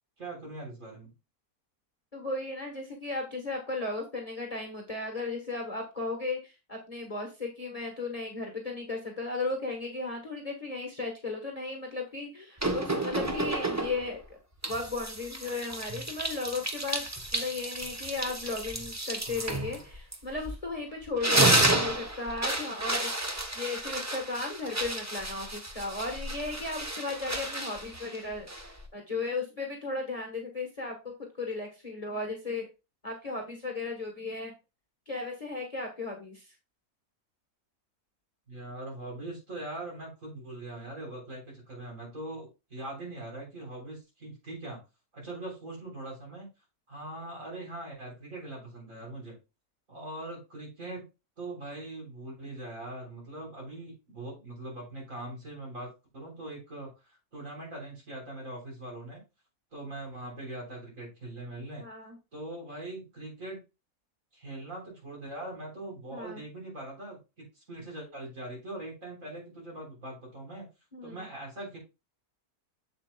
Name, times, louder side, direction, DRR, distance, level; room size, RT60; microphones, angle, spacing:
voice 1, 0.2-1.1 38.5-44.8 45.1-46.5 46.9-49.4 49.9-51.1 51.4-59.2 59.7-61.8 62.3-63.6 64.3-70.7 71.0-71.8, right 2 dB, 55° right, -2 dB, 4.1 m, -41 dB
voice 2, 2.1-14.2 14.7-17.0 17.3-32.7 33.0-34.5 35.1-36.5 61.8-62.2 66.1-66.4 70.9-71.3, left 3 dB, 25° left, 1 dB, 1.3 m, -35 dB
sound 1, 12.6-14.1 14.6-20.7 21.0-28.9, right 2 dB, 15° right, 0.6 m, -31 dB
7.4 x 7.2 x 2.3 m, 0.28 s
omnidirectional pair, 1.6 m